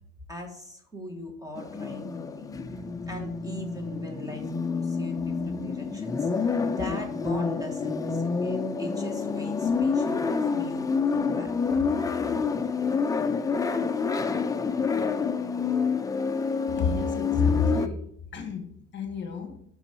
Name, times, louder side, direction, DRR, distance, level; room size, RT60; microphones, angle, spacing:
voice 1, 0.3-2.5 3.1-11.5, left 1 dB, 10° right, 1.3 m, -40 dB
sound 1, 1.6-17.9, left 5 dB, 10° left, 0.4 m, -28 dB
voice 2, 16.8-19.6, left 5 dB, 35° left, 1.4 m, -29 dB
6.8 x 6.2 x 4.4 m
cardioid pair, 130°, 32 cm